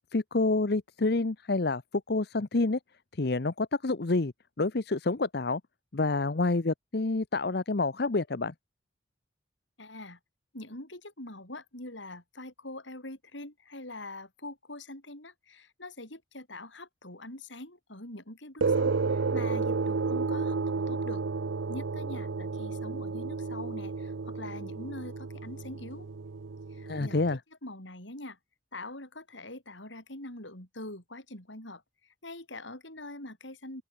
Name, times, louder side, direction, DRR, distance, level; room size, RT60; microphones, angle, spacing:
voice 1, 0.1-1.8 2.1-2.8 3.1-4.3 4.6-5.6 5.9-8.5 26.9-27.4, left 3 dB, 55° left, 0.8 m, -28 dB
voice 2, 9.8-10.2 10.5-21.2 21.7-26.1 26.7-28.4 28.7-31.8 32.2-33.8, left 2 dB, 75° left, 7.6 m, -44 dB
sound 1, 18.6-27.4, right 4 dB, 85° right, 0.6 m, -32 dB
open air
head